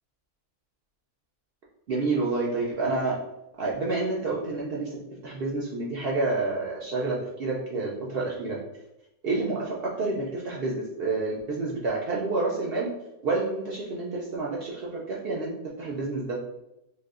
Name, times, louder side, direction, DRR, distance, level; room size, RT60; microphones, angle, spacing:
voice 1, 1.9-3.1 3.6-5.0 5.2-8.6 9.2-12.9 13.2-15.5 15.8-16.4, right 3 dB, 80° right, -4 dB, 0.5 m, -29 dB
3.3 x 2.6 x 2.4 m, 0.87 s
omnidirectional pair, 1.6 m